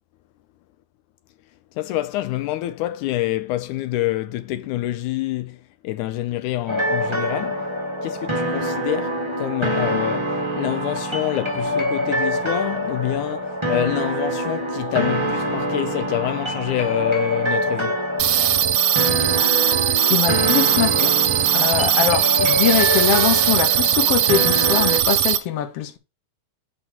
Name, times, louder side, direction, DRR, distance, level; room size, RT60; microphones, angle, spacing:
voice 1, 1.8-18.0, left 15 dB, 80° left, 2.0 m, -27 dB
sound 1, 6.7-25.0, equal, 20° right, 0.7 m, -25 dB
sound 2, 18.2-25.4, right 12 dB, 85° right, 2.5 m, -19 dB
voice 2, 20.1-21.2 21.5-26.0, left 10 dB, 60° left, 1.8 m, -23 dB
9.2 x 4.4 x 5.9 m
omnidirectional pair, 3.7 m